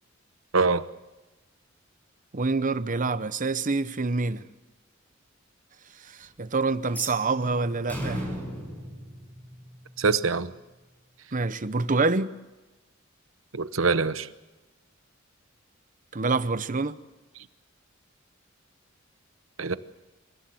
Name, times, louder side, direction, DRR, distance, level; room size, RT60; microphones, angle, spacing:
voice 1, 2.3-4.5 6.0-8.3 11.3-12.3 16.1-17.0, right 3 dB, 40° right, 0.9 m, -26 dB
sound 1, 6.8-9.9, equal, 10° left, 6.6 m, -36 dB
voice 2, 10.0-10.5 13.5-14.3 19.6-19.8, right 4 dB, 85° right, 1.0 m, -24 dB
27.5 x 16.0 x 7.8 m
head